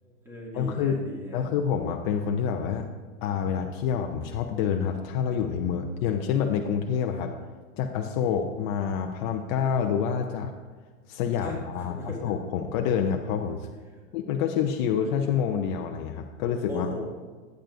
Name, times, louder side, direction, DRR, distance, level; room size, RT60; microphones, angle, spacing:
voice 1, 0.0-1.5 11.4-12.2 16.7-17.0, left 1 dB, 5° right, -4 dB, 2.1 m, -38 dB
voice 2, 0.5-1.0 1.3-2.9 3.2-7.3 7.8-10.5 11.1-13.7 14.1-16.9, left 7 dB, 35° left, 4 dB, 0.5 m, -27 dB
11.5 x 9.1 x 2.5 m, 1.4 s
hypercardioid pair, 130°, 40 cm